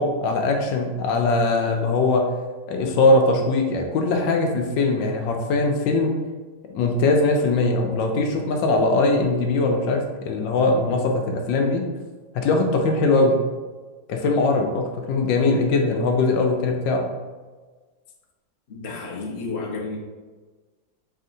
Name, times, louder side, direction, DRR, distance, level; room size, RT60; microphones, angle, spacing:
voice 1, 0.0-2.3 2.7-6.1 6.7-11.9 12.3-13.4 14.1-17.1, left 2 dB, 75° left, 2 dB, 1.2 m, -21 dB
voice 2, 18.7-20.0, left 3 dB, 55° left, -3 dB, 0.6 m, -31 dB
4.5 x 3.4 x 2.6 m, 1.3 s
omnidirectional pair, 2.1 m